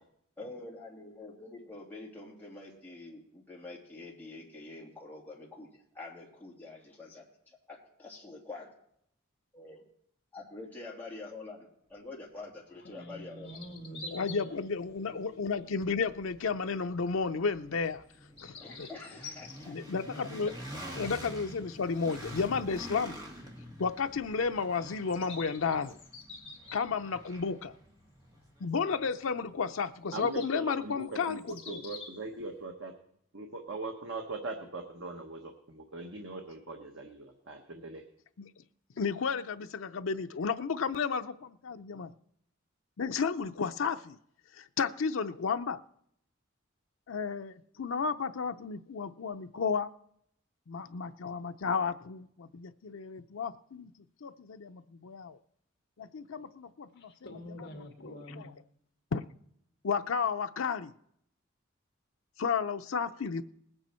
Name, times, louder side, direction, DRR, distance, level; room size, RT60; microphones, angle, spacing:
voice 1, 0.4-7.2 7.7-8.7 9.5-9.8 10.3-11.6 11.9-13.6 18.6-20.0 20.4-20.9 21.6-21.7, left 3 dB, 10° left, -4 dB, 2.8 m, -46 dB
voice 2, 12.8-15.7 56.9-58.6, equal, 50° left, 2 dB, 2.3 m, -47 dB
sound 1, 13.4-14.5 15.0-15.3 16.1-16.2 18.0-19.6 22.1-22.2 22.5-22.6 24.9-27.3 29.1-29.2 30.0-32.2, left 4 dB, 30° left, 2.2 m, -48 dB
sound 2, 13.7-29.7, equal, 20° right, 2.1 m, -48 dB
voice 3, 14.1-18.0 18.4-18.9 19.7-20.5 20.9-23.2 23.8-26.0 26.7-27.7 28.6-31.8 38.4-38.5 39.0-42.1 43.0-44.2 44.6-45.8 47.1-49.9 50.7-53.9 54.2-55.4 56.0-57.1 58.4-58.5 59.1-59.2 59.8-60.9 62.4-63.4, left 5 dB, 85° left, 8 dB, 0.6 m, -32 dB
voice 4, 30.1-31.4 31.7-32.9 33.3-38.0, right 3 dB, 75° right, 3 dB, 1.2 m, -41 dB
19.5 x 8.9 x 4.4 m, 0.72 s
head